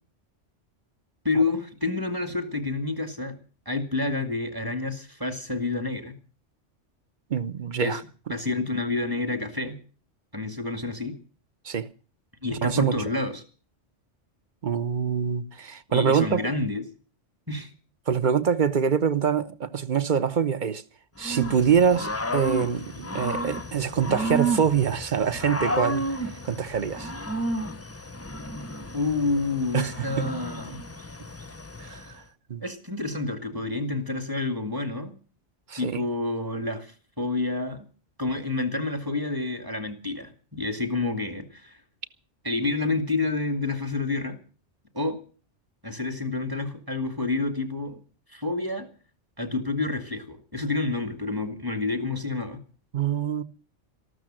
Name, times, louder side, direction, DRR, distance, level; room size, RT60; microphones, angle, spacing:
voice 1, 1.2-3.4 3.7-6.2 7.8-8.0 8.3-9.8 10.3-11.2 12.4-13.4 15.9-16.8 17.5-17.7 28.9-30.8 32.6-35.1 35.8-37.9 38.2-41.8 42.4-44.4 44.9-45.2 45.8-48.0 48.3-48.9 49.4-52.6, left 3 dB, 15° right, 2.2 m, -29 dB
voice 2, 7.3-8.0 11.6-11.9 12.5-12.9 14.6-16.4 18.1-20.8 21.2-26.0 26.4-27.1 29.7-30.3 31.8-32.1 32.5-32.6 35.7-36.0 52.9-53.4, right 7 dB, 45° right, 1.0 m, -25 dB
Growling / Cricket, 21.2-32.1, right 1 dB, 15° left, 0.6 m, -32 dB
14.0 x 12.5 x 7.6 m
omnidirectional pair, 1.2 m